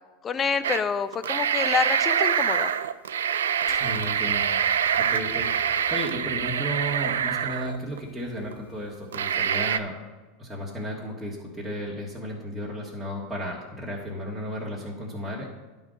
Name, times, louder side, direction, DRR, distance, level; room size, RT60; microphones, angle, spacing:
voice 1, 0.2-2.7, left 6 dB, 30° left, 12 dB, 0.5 m, -27 dB
sound 1, 0.6-0.8 1.1-8.0 8.5-8.6 9.1-9.8, right 8 dB, 75° right, 0.3 m, -25 dB
sound 2, 3.7-9.3, left 6 dB, 45° left, 2.4 m, -47 dB
voice 2, 3.8-4.5 5.0-10.0 10.4-15.5, equal, 5° right, -7 dB, 1.7 m, -34 dB
11.0 x 3.9 x 5.1 m, 1.2 s
hypercardioid pair, 85°, 0 cm